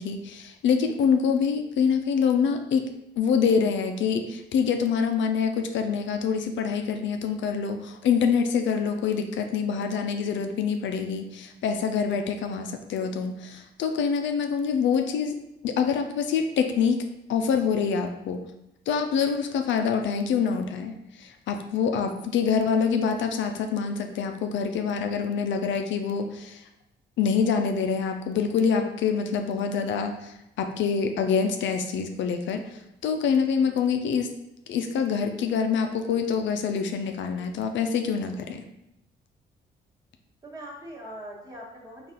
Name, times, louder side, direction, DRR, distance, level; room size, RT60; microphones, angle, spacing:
voice 1, 0.0-2.8 3.2-15.4 15.6-17.0 17.3-18.4 18.9-26.6 27.2-34.3 34.7-38.6, left 6 dB, 70° left, 6 dB, 0.4 m, -26 dB
voice 2, 19.5-19.8 33.6-33.8 40.4-42.1, equal, 20° right, -4 dB, 1.4 m, -42 dB
4.0 x 2.4 x 3.8 m, 0.85 s
cardioid pair, 90°, 20 cm